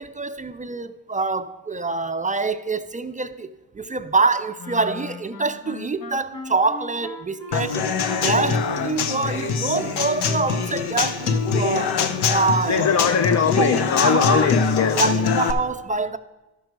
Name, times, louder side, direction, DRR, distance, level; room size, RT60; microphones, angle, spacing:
voice 1, 0.0-3.5 3.7-7.8 8.2-12.0 12.3-12.9 13.6-13.8 14.0-14.5 14.9-16.2, right 3 dB, 20° right, 0.4 m, -25 dB
Wind instrument woodwind instrument, 4.6-11.2, left 4 dB, 60° left, 1.7 m, -38 dB
Human voice / Acoustic guitar / Drum, 7.5-15.5, left 5 dB, 90° left, 0.8 m, -23 dB
voice 2, 12.7-15.0, left 6 dB, 45° left, 0.6 m, -21 dB
12.5 x 6.4 x 4.5 m
cardioid pair, 85°, 38 cm